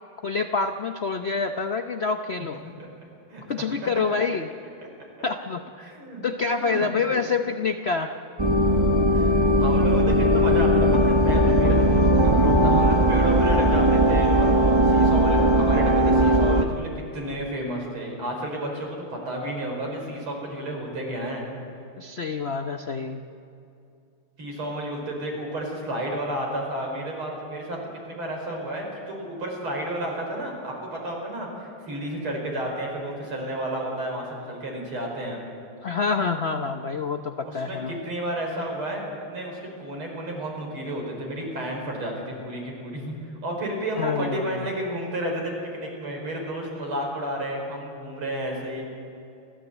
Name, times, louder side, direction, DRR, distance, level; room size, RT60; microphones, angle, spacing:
voice 1, 0.2-2.6 3.5-4.5 5.2-5.9 6.2-8.2 22.0-23.2 35.8-38.0 44.0-44.7, left 4 dB, 75° left, 6 dB, 0.5 m, -27 dB
voice 2, 5.8-6.2 6.5-7.2 9.1-21.5 24.4-27.8 28.1-35.4 37.4-37.8 38.0-48.8, right 1 dB, 70° right, 0 dB, 5.7 m, -31 dB
sound 1, 8.4-16.7, equal, 40° right, 0.3 m, -19 dB
29.5 x 14.0 x 8.2 m, 2.7 s
omnidirectional pair, 2.4 m